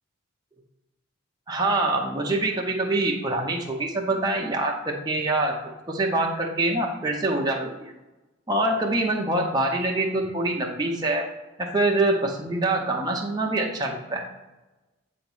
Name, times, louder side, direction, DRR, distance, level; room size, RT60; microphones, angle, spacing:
voice 1, 1.5-5.6 5.9-7.9 8.5-11.3 11.6-14.2, right 2 dB, 20° right, -1 dB, 0.6 m, -25 dB
7.7 x 3.0 x 5.2 m, 1.1 s
head